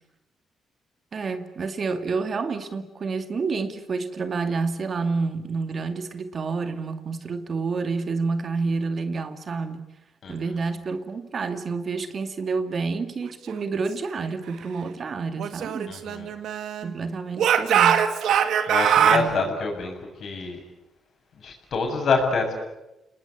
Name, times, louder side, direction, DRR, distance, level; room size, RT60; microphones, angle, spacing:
voice 1, 1.1-9.9 10.3-16.0 16.8-18.1 19.0-19.5, right 4 dB, 50° right, 2.4 m, -29 dB
Speech / Shout, 15.4-16.9 17.4-19.3, right 8 dB, 75° right, 2.0 m, -21 dB
voice 2, 15.9-16.3 18.7-20.6 21.4-22.6, left 4 dB, 60° left, 7.5 m, -26 dB
29.5 x 19.5 x 8.5 m
supercardioid pair, 70°, 0 cm